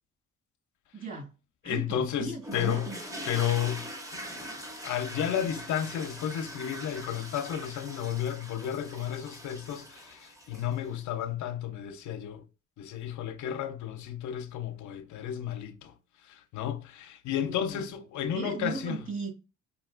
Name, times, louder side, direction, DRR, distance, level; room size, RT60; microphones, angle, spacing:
voice 1, 0.9-1.3 1.6-3.0 17.4-17.8 18.3-19.3, right 4 dB, 40° right, 1.9 m, -37 dB
voice 2, 1.6-2.9 3.2-4.4 4.8-12.4 12.8-15.9 16.3-19.0, left 10 dB, 75° left, 0.6 m, -32 dB
sound 1, 2.4-10.9, equal, 10° right, 0.8 m, -42 dB
4.9 x 2.9 x 2.4 m
cardioid pair, 90°, 30 cm